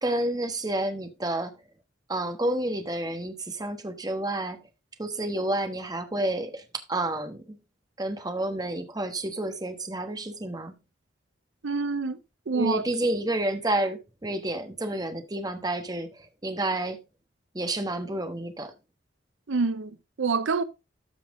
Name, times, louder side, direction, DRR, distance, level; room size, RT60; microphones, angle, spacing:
voice 1, 0.0-1.5 2.1-4.6 5.0-6.6 6.9-7.6 8.0-10.8 12.5-17.0 17.5-18.7, right 1 dB, 20° right, 1.2 m, -30 dB
voice 2, 11.6-12.2 12.5-12.9 19.5-20.6, right 4 dB, 85° right, 0.6 m, -27 dB
13.0 x 5.8 x 3.6 m
head